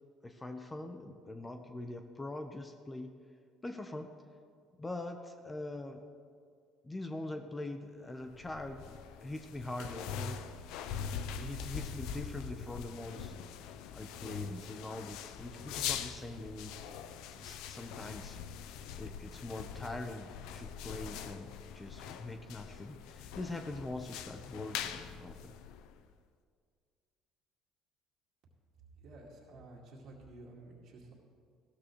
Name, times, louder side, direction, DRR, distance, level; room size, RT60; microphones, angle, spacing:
voice 1, 0.2-3.1 3.6-4.1 4.8-6.0 6.8-10.4 11.1-13.3 13.9-16.7 17.3-18.4 19.0-25.5, left 2 dB, 20° left, 6 dB, 0.9 m, -43 dB
sound 1, 8.3-26.1, left 8 dB, 75° left, 0.6 m, -43 dB
voice 2, 29.0-31.1, right 2 dB, 65° right, -4 dB, 2.2 m, -52 dB
15.5 x 13.0 x 3.2 m, 2.2 s
supercardioid pair, 80°, 0 cm